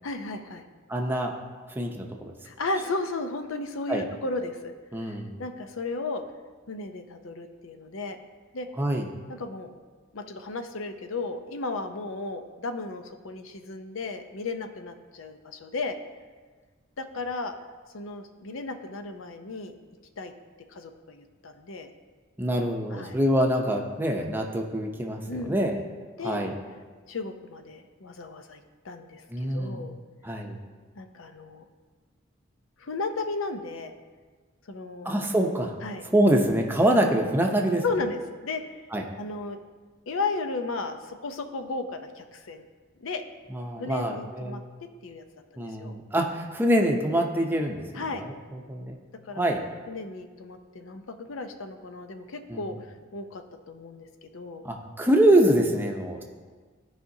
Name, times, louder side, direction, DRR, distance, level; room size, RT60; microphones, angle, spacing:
voice 1, 0.0-0.7 2.4-4.7 5.0-6.2 6.7-8.2 8.5-8.7 9.3-9.7 10.1-16.0 17.0-17.5 17.9-19.7 20.2-20.3 20.7-21.9 22.9-23.2 25.3-25.6 26.2-26.4 27.1-29.9 31.0-31.6 32.8-33.9 34.7-35.1 35.8-36.0 37.8-38.8 39.2-39.6 40.1-42.7 43.0-43.2 43.8-44.6 45.0-45.2 45.6-46.0 47.9-48.2 49.2-49.5 49.9-52.7 53.1-54.7, left 3 dB, 75° left, 7 dB, 0.6 m, -34 dB
voice 2, 0.9-1.3 1.7-2.3 3.9-4.1 4.9-5.4 8.8-9.1 22.4-25.8 26.2-26.5 29.3-29.8 30.2-30.6 35.0-35.8 36.1-37.8 38.9-39.0 43.5-44.6 45.6-47.8 48.2-49.0 49.3-49.6 52.5-52.6 54.6-56.2, right 1 dB, 10° right, 1 dB, 0.7 m, -25 dB
14.5 x 5.0 x 2.7 m, 1.4 s
head